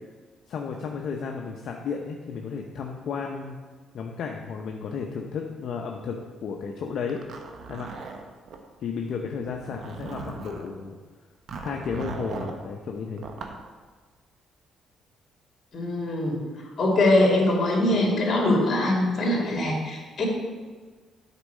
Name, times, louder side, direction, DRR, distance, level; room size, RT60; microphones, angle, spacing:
voice 1, 0.5-3.6 3.9-7.2 7.7-7.9 8.8-11.0 11.6-13.3, left 5 dB, 65° left, 1 dB, 0.7 m, -33 dB
Zipper (clothing), 7.1-8.6 9.4-10.7 11.5-12.6 13.2-13.6, right 4 dB, 60° right, 1.0 m, -38 dB
voice 2, 15.7-16.4 16.8-20.3, left 1 dB, 45° left, -2 dB, 2.8 m, -22 dB
8.2 x 4.6 x 6.4 m, 1.4 s
cardioid pair, 85°, 0 cm